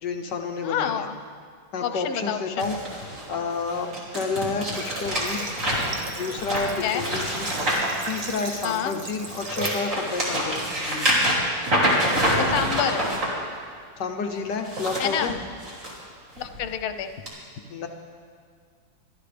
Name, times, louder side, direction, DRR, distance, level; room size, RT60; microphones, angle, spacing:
voice 1, 0.0-1.1 1.7-2.8 3.3-5.5 6.1-7.5 8.0-11.1 14.0-15.3 17.7-17.9, left 4 dB, 65° left, 5 dB, 1.3 m, -30 dB
voice 2, 0.6-1.2 1.8-2.7 6.8-7.0 8.6-8.9 10.3-10.5 12.4-13.0 15.0-15.3 16.4-17.1, left 9 dB, 80° left, 9 dB, 1.6 m, -28 dB
sound 1, 2.6-8.7 9.2-13.3 14.5-15.9 16.4-16.6 17.3-17.4, equal, 35° right, 3.2 m, -26 dB
Water / Water tap faucet, 4.7-9.9, right 3 dB, 65° right, 2.0 m, -37 dB
23.0 x 14.0 x 3.4 m, 2.1 s
omnidirectional pair, 2.3 m